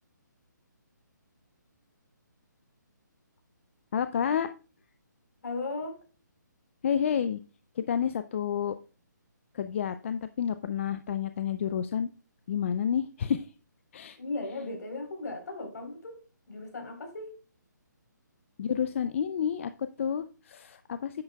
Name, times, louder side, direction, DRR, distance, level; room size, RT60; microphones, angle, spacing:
voice 1, 3.9-4.5 6.8-7.4 7.8-8.8 9.5-12.1 12.5-13.5 13.9-14.2 18.6-21.2, left 8 dB, 40° left, 11 dB, 0.4 m, -30 dB
voice 2, 5.4-6.0 14.2-16.2 16.5-17.4, left 2 dB, 60° left, 3 dB, 3.9 m, -36 dB
9.9 x 8.5 x 2.3 m, 0.36 s
hypercardioid pair, 155°, 10 cm